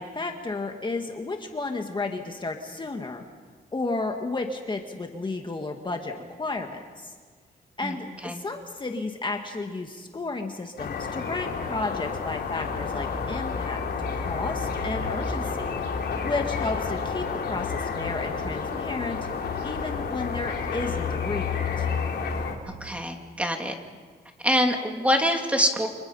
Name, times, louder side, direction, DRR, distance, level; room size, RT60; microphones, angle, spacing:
voice 1, 0.0-3.3 3.7-7.1 7.8-13.8 14.1-15.8 16.2-19.2 19.6-21.9, left 3 dB, 25° left, 3 dB, 1.9 m, -32 dB
sound 1, 10.8-22.5, left 5 dB, 75° left, 3.9 m, -30 dB
voice 2, 22.8-23.7 24.4-25.9, equal, 5° right, 3 dB, 2.9 m, -24 dB
29.5 x 26.5 x 5.6 m, 1.5 s
cardioid pair, 105°, 18 cm